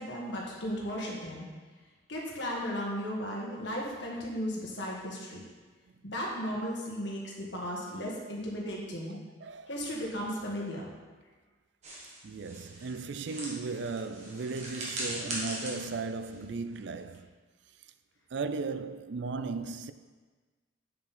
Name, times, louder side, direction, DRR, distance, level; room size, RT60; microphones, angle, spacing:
voice 1, 0.0-1.5 2.1-5.4 6.0-9.2 9.7-10.9, equal, 65° left, 1.6 m, -35 dB
voice 2, 9.4-9.7 12.2-17.3 18.3-19.9, right 4 dB, 65° right, 0.4 m, -36 dB
sound 1, 11.8-17.1, right 1 dB, 35° right, 1.9 m, -40 dB
7.7 x 7.2 x 4.2 m
head